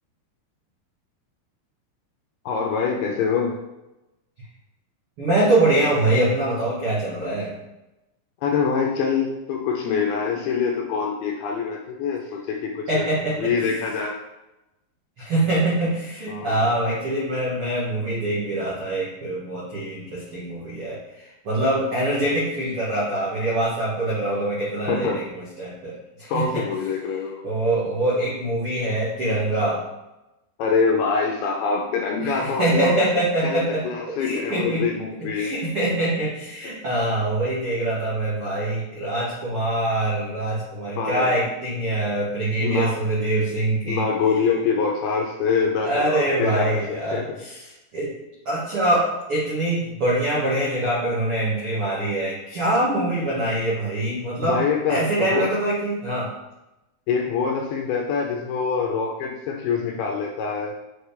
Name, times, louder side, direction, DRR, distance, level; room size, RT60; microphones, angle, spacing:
voice 1, 2.5-3.6 8.4-14.1 16.3-16.7 24.9-25.2 26.3-27.4 30.6-33.1 33.4-35.6 41.0-41.3 42.6-42.9 43.9-46.8 47.1-47.4 54.4-55.5 57.1-60.7, left 5 dB, 80° left, 1 dB, 2.4 m, -25 dB
voice 2, 5.2-7.5 12.9-13.5 15.2-26.6 27.4-29.8 32.2-34.9 35.2-44.0 45.8-48.1 48.4-56.3, right 1 dB, 70° right, -8 dB, 1.3 m, -24 dB
7.1 x 4.8 x 3.4 m, 0.96 s
omnidirectional pair, 4.9 m